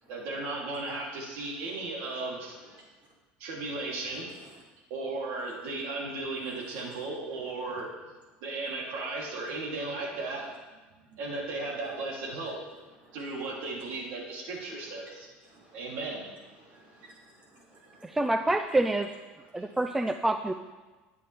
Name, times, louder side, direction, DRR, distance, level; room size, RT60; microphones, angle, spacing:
voice 1, 0.1-2.6 3.4-4.3 4.9-7.9 8.4-10.5 11.1-12.6 13.1-15.3 15.7-16.3 19.6-19.7, right 3 dB, 60° right, -3 dB, 3.0 m, -35 dB
voice 2, 6.6-7.0 13.0-13.2 15.0-15.1 15.4-16.0 16.6-18.2 19.6-19.8, right 1 dB, 35° right, -5 dB, 5.1 m, -57 dB
voice 3, 18.0-19.1 19.5-20.5, right 2 dB, 5° right, 7 dB, 0.4 m, -27 dB
20.0 x 9.5 x 3.4 m, 1.2 s
cardioid pair, 170°, 4 cm